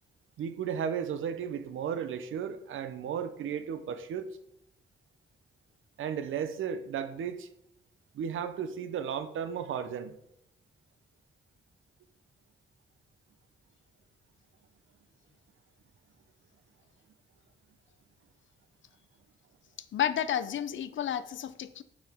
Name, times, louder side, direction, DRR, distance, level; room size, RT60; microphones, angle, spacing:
voice 1, 0.4-4.2 6.0-7.5 8.1-10.2, right 8 dB, 80° right, 11 dB, 0.6 m, -34 dB
voice 2, 19.9-21.8, left 9 dB, 70° left, 15 dB, 0.5 m, -31 dB
6.5 x 5.8 x 3.5 m, 0.77 s
cardioid pair, 70°, 20 cm